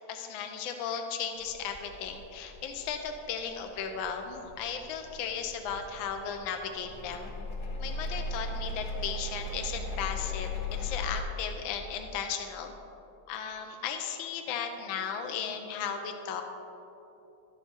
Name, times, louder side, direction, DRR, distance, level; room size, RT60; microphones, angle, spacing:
voice 1, 0.1-7.3 7.8-12.7 13.3-16.4, left 7 dB, 80° left, 5 dB, 1.4 m, -36 dB
sound 1, 1.4-11.2, left 2 dB, 55° left, 1.4 m, -38 dB
12.5 x 5.7 x 4.3 m, 2.9 s
omnidirectional pair, 2.2 m